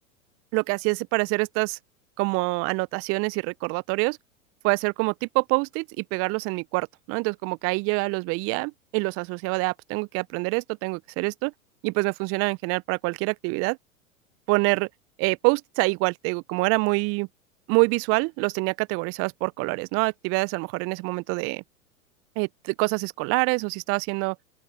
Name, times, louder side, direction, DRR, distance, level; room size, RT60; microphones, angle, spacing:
voice 1, 0.5-1.8 2.2-4.2 4.6-11.5 11.8-13.8 14.5-14.9 15.2-17.3 17.7-21.6 22.4-24.4, right 29 dB, 30° right, 0.8 m, -26 dB
open air
figure-of-eight pair, 95°, 43 cm